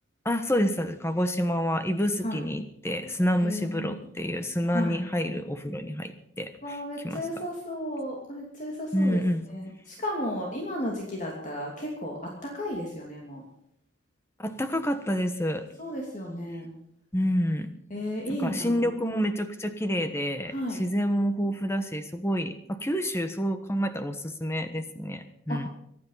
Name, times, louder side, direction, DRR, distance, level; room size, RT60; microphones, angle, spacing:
voice 1, 0.2-6.1 6.4-7.2 8.9-9.4 14.4-15.6 17.1-17.7 18.4-25.7, equal, 10° left, 9 dB, 1.2 m, -28 dB
voice 2, 3.4-4.0 4.7-5.1 6.6-9.2 9.5-13.4 15.8-16.7 17.9-18.9 20.5-20.8 25.5-25.6, equal, 35° left, -1 dB, 2.7 m, -34 dB
24.0 x 9.7 x 5.7 m, 0.73 s
head